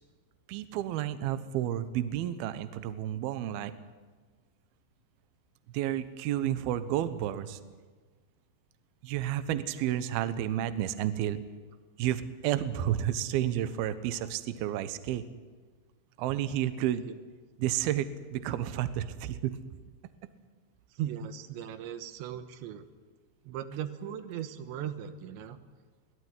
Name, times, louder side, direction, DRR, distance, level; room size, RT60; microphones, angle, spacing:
voice 1, 0.5-3.7 5.7-7.6 9.0-11.4 12.0-15.2 16.2-17.1 17.6-19.6, right 11 dB, 85° right, 12 dB, 2.2 m, -31 dB
voice 2, 20.9-22.8 23.5-25.6, right 10 dB, 70° right, 9 dB, 3.2 m, -38 dB
24.5 x 17.5 x 9.7 m, 1.4 s
omnidirectional pair, 5.8 m